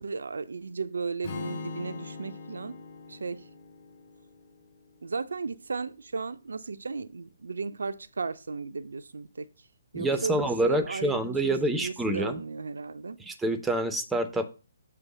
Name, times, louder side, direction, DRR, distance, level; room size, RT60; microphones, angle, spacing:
voice 1, 0.0-2.8 3.1-3.4 5.0-9.5 9.9-13.2, right 4 dB, 65° right, 0.4 m, -35 dB
Strum, 1.2-5.4, left 4 dB, 45° left, 1.7 m, -42 dB
voice 2, 9.9-12.3 13.2-14.5, right 1 dB, 5° right, 0.5 m, -27 dB
6.9 x 3.3 x 6.0 m
figure-of-eight pair, 135°, 0 cm